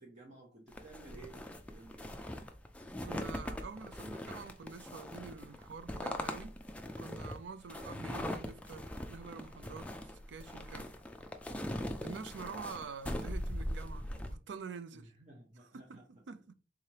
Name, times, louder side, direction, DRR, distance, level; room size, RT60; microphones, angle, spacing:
voice 1, 0.0-2.1 14.9-16.0, right 2 dB, 40° right, 0.8 m, -55 dB
sound 1, 0.7-14.3, left 1 dB, 5° left, 0.3 m, -41 dB
voice 2, 3.0-6.5 7.0-11.0 12.0-15.1 15.6-16.5, right 5 dB, 70° right, 0.4 m, -47 dB
3.6 x 3.3 x 2.9 m
head